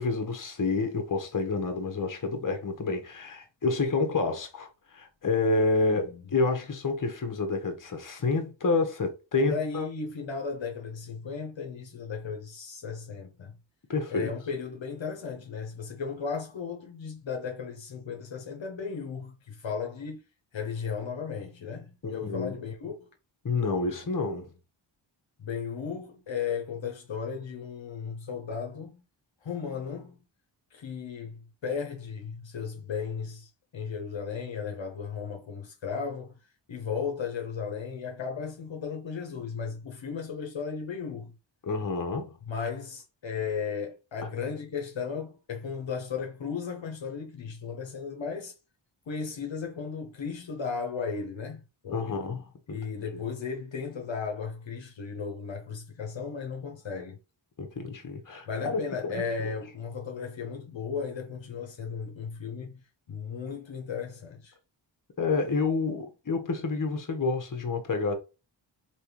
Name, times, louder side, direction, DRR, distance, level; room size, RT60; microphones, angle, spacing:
voice 1, 0.0-9.9 13.9-14.3 22.0-22.6 23.4-24.5 41.6-42.3 51.9-52.8 53.1-53.2 57.6-59.6 65.2-68.1, left 3 dB, 40° left, 1.0 m, -29 dB
voice 2, 5.9-6.2 9.3-13.5 14.1-20.2 20.5-23.1 25.4-29.0 29.4-30.2 30.7-36.4 36.7-41.3 42.5-48.5 49.1-52.2 52.7-57.2 58.5-64.5, left 6 dB, 70° left, 0.9 m, -35 dB
3.4 x 3.0 x 2.9 m
cardioid pair, 55°, 48 cm